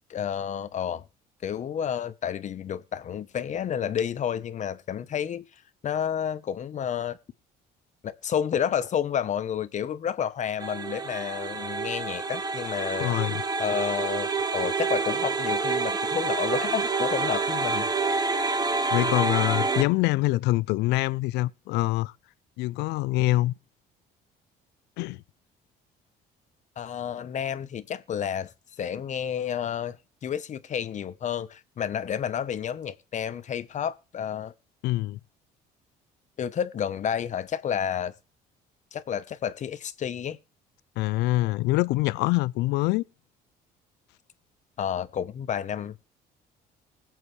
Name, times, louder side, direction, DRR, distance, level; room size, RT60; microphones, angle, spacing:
voice 1, 0.1-1.0 1.4-5.4 5.8-7.2 8.0-13.1 13.6-17.9 26.8-28.5 28.8-30.0 30.2-34.5 36.4-38.1 38.9-40.4 44.8-45.9, left 8 dB, 45° left, 1.0 m, -30 dB
sound 1, 10.6-19.8, right 4 dB, 25° right, 1.1 m, -28 dB
voice 2, 13.0-13.4 18.9-22.1 22.6-23.5 25.0-25.2 34.8-35.2 41.0-43.0, left 18 dB, 90° left, 0.5 m, -25 dB
20.5 x 7.6 x 3.3 m
cardioid pair, 110°, 17 cm